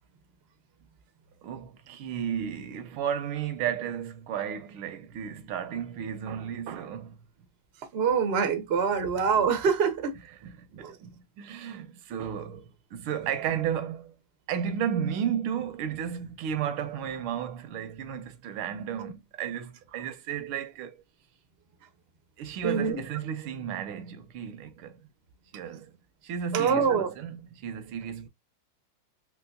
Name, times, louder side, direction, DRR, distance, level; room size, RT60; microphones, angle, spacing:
voice 1, 1.4-7.2 9.0-9.1 10.4-14.1 14.5-21.0 22.4-25.0 25.5-25.9 26.2-28.3, right 8 dB, 85° right, 1.6 m, -33 dB
voice 2, 7.9-10.2 10.8-11.0 22.6-23.0 26.5-27.1, right 6 dB, 65° right, 0.6 m, -25 dB
3.9 x 3.0 x 2.2 m
omnidirectional pair, 2.2 m